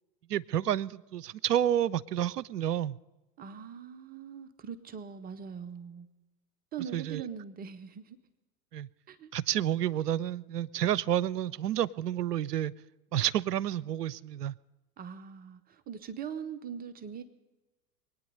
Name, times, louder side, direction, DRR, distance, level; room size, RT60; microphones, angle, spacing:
voice 1, 0.3-3.0 6.9-7.2 8.7-8.9 9.3-12.7 13.1-14.6, right 11 dB, 75° right, 21 dB, 0.6 m, -30 dB
voice 2, 3.4-6.1 6.7-8.2 9.1-9.3 15.0-17.2, right 7 dB, 20° right, 11 dB, 0.6 m, -41 dB
24.0 x 9.4 x 5.3 m, 1.1 s
figure-of-eight pair, 90°, 48 cm